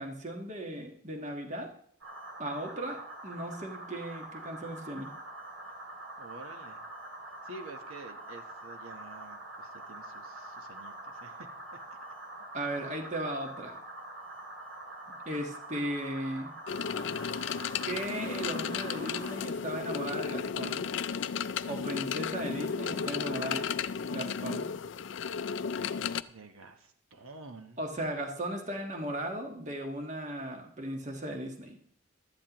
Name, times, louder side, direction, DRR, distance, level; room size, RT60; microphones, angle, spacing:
voice 1, 0.0-1.7 2.4-5.1 12.5-13.8 15.2-16.5 17.8-20.8 21.7-23.6 24.1-24.7 27.8-31.8, right 1 dB, 35° right, 3 dB, 1.5 m, -37 dB
sound 1, 2.0-19.3, right 2 dB, 70° right, 2.8 m, -45 dB
voice 2, 6.2-6.8 7.4-11.5 11.9-12.0 26.3-27.8, right 2 dB, 90° right, 6 dB, 1.1 m, -49 dB
sound 2, 16.7-26.2, left 6 dB, 60° left, 0.4 m, -34 dB
16.5 x 12.0 x 3.0 m, 0.64 s
head